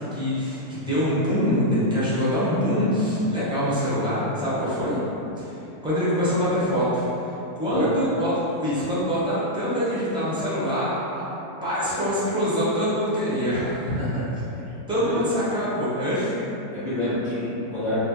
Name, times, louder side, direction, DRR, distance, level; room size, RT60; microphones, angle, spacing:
voice 1, 0.1-5.0 5.4-5.5 5.8-11.2 11.6-13.9 14.9-16.3, equal, 5° right, -11 dB, 0.5 m, -24 dB
voice 2, 13.8-14.2 14.9-15.2 16.7-18.0, left 1 dB, 60° left, -17 dB, 1.7 m, -28 dB
4.2 x 2.1 x 3.0 m, 2.9 s
omnidirectional pair, 1.7 m